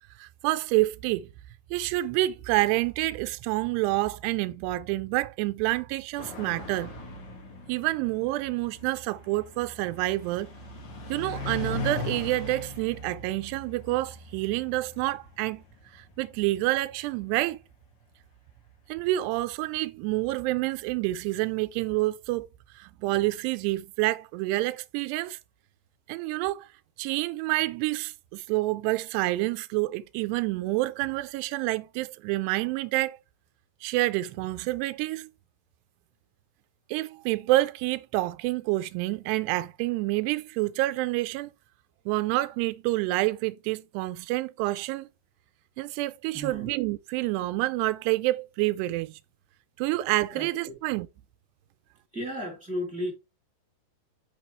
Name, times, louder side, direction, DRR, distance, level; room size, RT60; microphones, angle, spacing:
voice 1, 0.2-1.3 1.7-6.9 7.7-10.5 11.1-15.6 15.9-17.6 18.9-22.5 22.7-25.4 26.1-26.7 27.0-33.2 33.8-35.3 36.9-41.5 42.1-45.1 45.8-49.2 49.8-51.1, right 18 dB, 90° right, 2.7 m, -28 dB
sound 1, 6.2-17.1, left 2 dB, 55° left, 1.3 m, -39 dB
voice 2, 46.3-46.7 50.3-50.8 52.1-53.1, equal, 5° right, 1.5 m, -34 dB
6.7 x 5.9 x 3.0 m
omnidirectional pair, 4.7 m